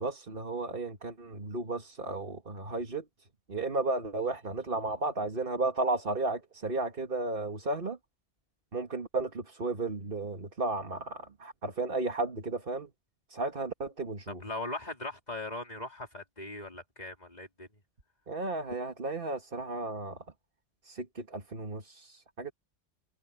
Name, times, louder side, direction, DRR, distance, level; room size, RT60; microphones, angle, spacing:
voice 1, 0.0-3.0 3.5-8.0 8.7-12.9 13.3-14.4 18.3-20.2 20.8-22.5, right 2 dB, 45° right, 2.1 m, -34 dB
voice 2, 14.4-17.7, left 2 dB, 35° left, 3.9 m, -39 dB
omnidirectional pair, 1.3 m